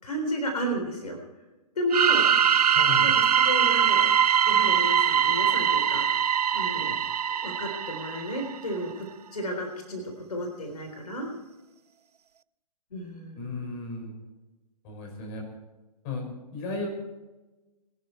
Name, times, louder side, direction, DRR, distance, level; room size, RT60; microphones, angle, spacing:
voice 1, 0.0-1.2 1.8-2.3 3.0-4.1 4.5-6.0 6.5-7.0 7.4-10.0 10.3-11.3 12.9-13.7, equal, 70° left, 3 dB, 3.8 m, -32 dB
sound 1, 1.9-8.6, right 8 dB, 75° right, 0.5 m, -22 dB
voice 2, 2.7-3.1 13.3-14.1 14.8-15.4 16.0-16.9, left 3 dB, 30° left, 1 dB, 5.9 m, -35 dB
22.0 x 11.5 x 4.4 m, 1.1 s
figure-of-eight pair, 135°, 20 cm